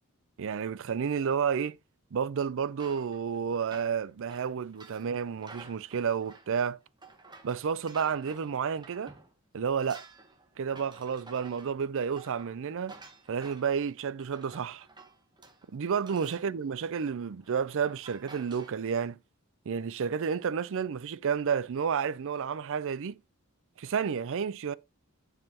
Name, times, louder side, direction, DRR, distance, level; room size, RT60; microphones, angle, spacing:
voice 1, 0.4-1.8 2.1-6.8 7.4-9.1 9.5-10.0 10.6-13.0 13.3-14.9 15.7-19.2 19.7-23.2 23.8-24.7, right 6 dB, 60° right, 0.4 m, -31 dB
sound 1, 2.8-9.3 9.6-18.7, right 3 dB, 20° right, 1.3 m, -52 dB
10.5 x 4.8 x 2.9 m
head